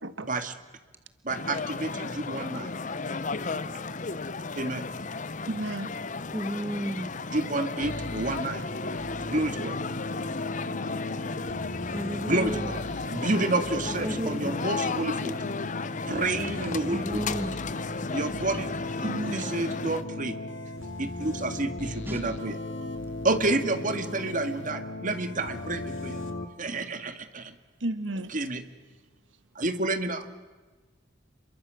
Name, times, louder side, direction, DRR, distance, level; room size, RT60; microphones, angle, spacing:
voice 1, 0.2-0.5 1.2-2.7 4.6-4.8 7.3-8.6 9.3-9.8 12.3-12.8 13.1-15.4 16.1-17.2 18.1-18.7 19.3-20.4 21.0-22.6 23.2-26.2 26.6-27.6 28.3-28.6 29.6-30.3, right 2 dB, 45° right, 9 dB, 1.9 m, -29 dB
sound 1, 1.3-20.0, left 4 dB, 40° left, 0.8 m, -34 dB
voice 2, 5.5-5.9 19.0-19.4 27.8-28.4, right 1 dB, 85° right, 11 dB, 1.5 m, -32 dB
voice 3, 6.3-7.2 11.9-12.7 13.9-14.5 16.9-17.5 22.0-22.2, equal, 10° right, 7 dB, 1.8 m, -33 dB
sound 2, 7.8-26.4, left 2 dB, 85° left, 2.5 m, -36 dB
28.5 x 22.5 x 7.7 m, 1.3 s
head